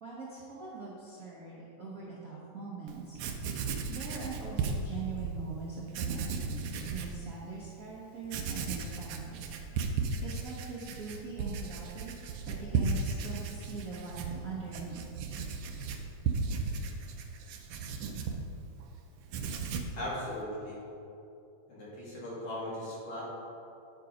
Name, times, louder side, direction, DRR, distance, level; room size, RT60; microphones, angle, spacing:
voice 1, 0.0-9.5 10.0-12.1 12.5-15.0, right 4 dB, 60° right, -6 dB, 0.8 m, -42 dB
Writing, 2.9-3.0 3.2-5.3 5.9-7.2 7.6-7.7 8.2-18.9 19.2-20.0, right 5 dB, 85° right, 1.3 m, -35 dB
voice 2, 20.0-20.8 21.7-23.2, left 1 dB, 50° left, -7 dB, 2.7 m, -38 dB
8.8 x 4.9 x 5.2 m, 2.8 s
omnidirectional pair, 3.3 m